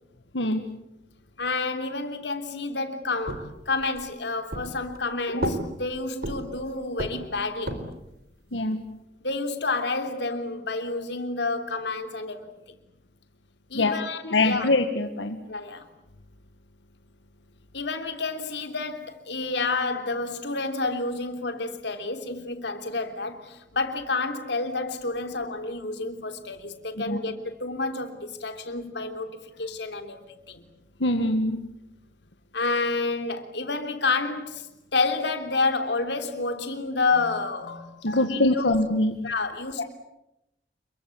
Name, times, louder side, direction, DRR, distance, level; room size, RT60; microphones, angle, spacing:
voice 1, 1.4-7.8 9.2-12.5 13.7-14.7 15.5-15.9 17.7-30.2 30.5-30.6 32.5-38.8 39.2-39.8, left 3 dB, 70° left, 3.4 m, -29 dB
sound 1, 3.3-4.1 4.5-5.1 5.4-6.6 7.0-8.1, right 1 dB, 60° right, 4.1 m, -32 dB
voice 2, 8.5-8.8 13.7-14.0 14.3-15.4 27.1-27.2 31.0-31.6 38.0-39.1 39.8-39.9, left 2 dB, 90° left, 1.7 m, -23 dB
29.0 x 23.0 x 8.6 m
head